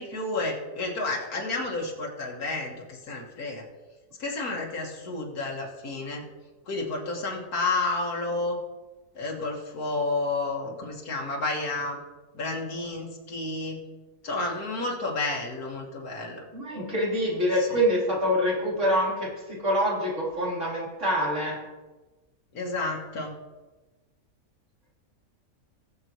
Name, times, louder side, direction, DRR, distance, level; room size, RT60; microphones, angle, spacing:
voice 1, 0.0-3.6 4.2-6.2 6.7-8.6 9.2-12.0 12.3-13.8 14.2-16.4 17.5-17.8 22.5-23.3, left 3 dB, 80° left, -2 dB, 2.1 m, -31 dB
voice 2, 16.5-19.3 19.6-21.6, equal, 55° right, -6 dB, 4.1 m, -25 dB
20.0 x 6.9 x 3.1 m, 1.2 s
omnidirectional pair, 1.5 m